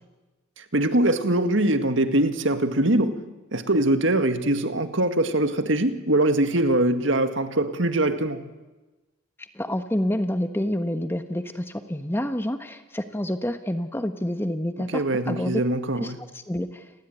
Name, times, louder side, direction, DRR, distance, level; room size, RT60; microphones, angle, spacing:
voice 1, 0.6-3.2 3.5-8.5 14.8-16.2, right 1 dB, 60° right, 2.0 m, -23 dB
voice 2, 9.5-15.6 16.0-16.9, left 1 dB, 10° left, 1.3 m, -28 dB
30.0 x 21.0 x 9.4 m
head